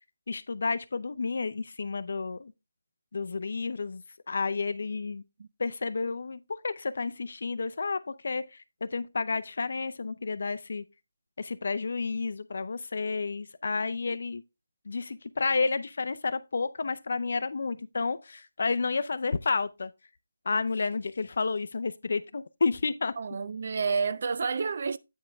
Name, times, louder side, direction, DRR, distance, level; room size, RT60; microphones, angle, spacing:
voice 1, 0.3-2.5 3.1-5.2 5.6-10.8 11.4-14.4 14.9-19.9 20.5-23.1, left 4 dB, 45° left, 0.6 m, -31 dB
voice 2, 23.2-25.0, right 5 dB, 35° right, 0.3 m, -29 dB
8.8 x 5.1 x 3.5 m
figure-of-eight pair, 180°, 0 cm